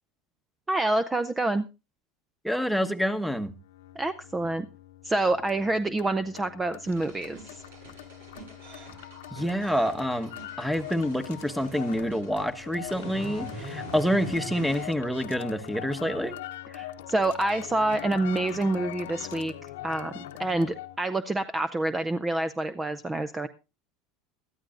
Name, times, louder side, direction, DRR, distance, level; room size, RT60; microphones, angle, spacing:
voice 1, 0.7-1.7 4.0-4.7 5.0-7.6 16.7-19.5 19.8-23.5, right 2 dB, 15° right, 0.6 m, -27 dB
voice 2, 2.4-3.5 9.3-10.3 10.6-16.3, equal, ahead, 1.2 m, -27 dB
sound 1, 3.6-21.0, left 13 dB, 85° left, 1.0 m, -42 dB
sound 2, 6.9-14.9, right 2 dB, 90° right, 5.4 m, -43 dB
19.5 x 12.5 x 2.6 m
supercardioid pair, 100°, 0 cm